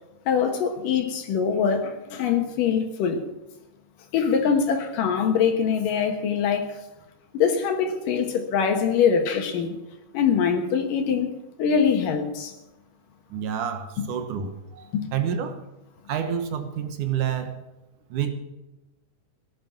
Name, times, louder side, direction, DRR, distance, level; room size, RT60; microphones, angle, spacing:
voice 1, 0.3-3.2 4.1-6.7 7.3-9.8 10.1-11.3 11.6-12.5 14.9-15.1, left 7 dB, 80° left, 4 dB, 3.0 m, -23 dB
voice 2, 13.3-15.6 16.1-17.6 18.1-18.3, right 8 dB, 70° right, 8 dB, 2.7 m, -28 dB
17.0 x 11.0 x 6.0 m, 0.99 s
omnidirectional pair, 3.8 m